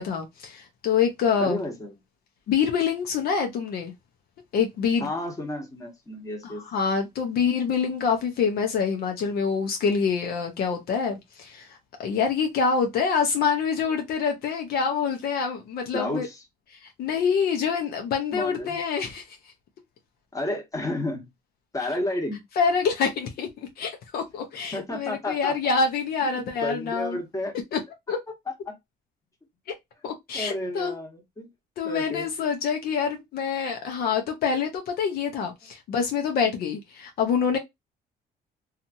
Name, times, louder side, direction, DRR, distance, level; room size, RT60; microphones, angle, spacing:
voice 1, 0.0-1.6 2.5-3.9 4.5-5.1 6.4-11.7 12.0-16.3 16.8-19.2 22.6-23.5 23.8-27.2 27.7-27.8 28.1-28.2 30.0-30.9 31.8-37.6, left 6 dB, 65° left, 0.7 m, -26 dB
voice 2, 1.4-2.0 5.0-6.6 15.9-16.4 18.3-18.8 20.3-21.2 21.7-22.4 24.7-25.5 26.6-27.5 28.5-28.7 30.3-31.5 31.8-32.3, left 1 dB, 20° left, 1.3 m, -31 dB
2.8 x 2.4 x 2.6 m
cardioid pair, 110°, 17 cm